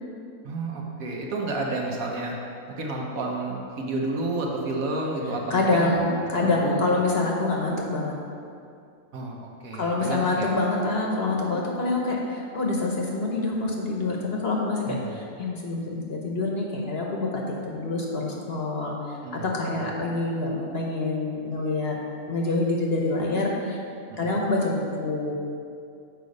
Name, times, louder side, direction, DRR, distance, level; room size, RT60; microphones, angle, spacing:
voice 1, 0.4-2.4 2.7-5.9 6.3-6.8 9.1-10.5 14.9-15.1 19.2-19.4 24.1-24.4, right 2 dB, 70° right, -1 dB, 1.4 m, -31 dB
voice 2, 5.5-8.1 9.7-22.0 22.3-23.8 24.2-25.3, left 2 dB, 50° left, -1 dB, 1.0 m, -26 dB
6.8 x 4.9 x 5.3 m, 2.4 s
omnidirectional pair, 1.5 m